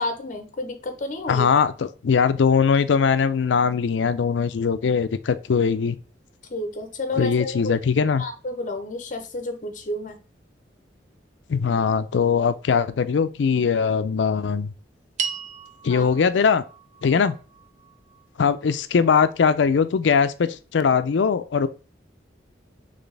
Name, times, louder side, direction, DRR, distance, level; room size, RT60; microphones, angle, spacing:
voice 1, 0.0-1.5 6.5-7.8 8.2-10.2 15.9-16.1, left 2 dB, 45° left, 0.8 m, -31 dB
voice 2, 1.3-6.0 7.2-8.2 11.5-14.7 15.8-16.6 17.0-17.3 18.4-21.7, left 6 dB, 80° left, 0.4 m, -21 dB
sound 1, 15.2-19.6, right 7 dB, 40° right, 0.6 m, -37 dB
4.1 x 3.3 x 3.3 m
head